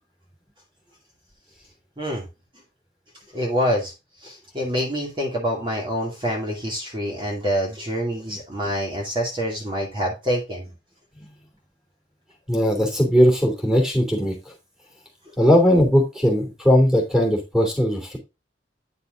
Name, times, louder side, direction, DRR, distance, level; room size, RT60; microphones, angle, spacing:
voice 1, 3.3-3.9 4.2-10.7 15.3-15.4, equal, 30° right, -1 dB, 2.4 m, -26 dB
voice 2, 12.5-14.3 15.4-18.2, equal, 5° right, -1 dB, 3.0 m, -18 dB
9.9 x 6.7 x 2.5 m, 0.26 s
head